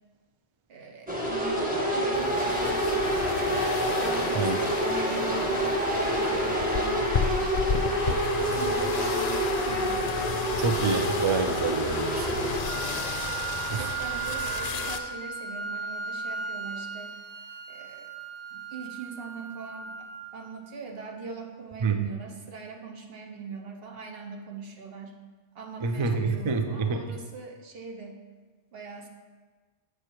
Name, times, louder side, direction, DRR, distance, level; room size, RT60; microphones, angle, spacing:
voice 1, 0.7-3.2 4.0-7.8 8.4-10.0 13.6-17.1 17.7-18.1 18.5-25.2 25.5-28.2 28.7-29.1, right 5 dB, 60° right, 2 dB, 1.1 m, -41 dB
sound 1, 1.1-12.6, equal, 10° right, 1.1 m, -27 dB
sound 2, 2.1-15.0, left 5 dB, 50° left, 0.5 m, -33 dB
voice 2, 10.6-12.5 13.7-13.9 21.8-22.1 25.8-27.0, right 4 dB, 40° right, 6 dB, 0.4 m, -27 dB
Wind instrument woodwind instrument, 12.6-20.6, right 6 dB, 85° right, 1.0 m, -36 dB
7.8 x 6.7 x 4.5 m, 1.4 s
omnidirectional pair, 1.2 m